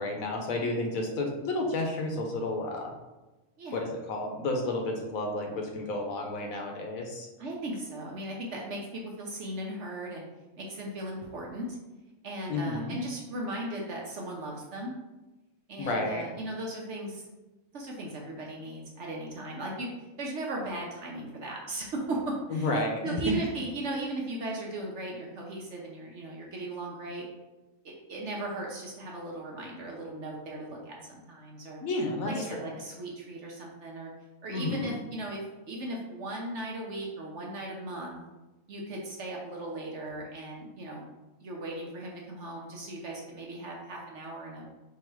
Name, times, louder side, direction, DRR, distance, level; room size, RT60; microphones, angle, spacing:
voice 1, 0.0-2.9 3.7-7.3 12.5-13.0 15.8-16.3 22.5-23.1 31.8-32.8 34.5-34.9, left 2 dB, 70° left, 2 dB, 1.0 m, -31 dB
voice 2, 7.4-10.3 10.6-11.8 12.2-14.9 15.7-17.2 17.7-19.9 20.2-22.7 23.0-27.3 28.1-31.8 32.2-34.1 34.4-38.2 38.7-41.1 41.4-44.7, right 1 dB, 60° right, -1 dB, 0.9 m, -37 dB
3.8 x 2.9 x 4.5 m, 1.1 s
omnidirectional pair, 1.6 m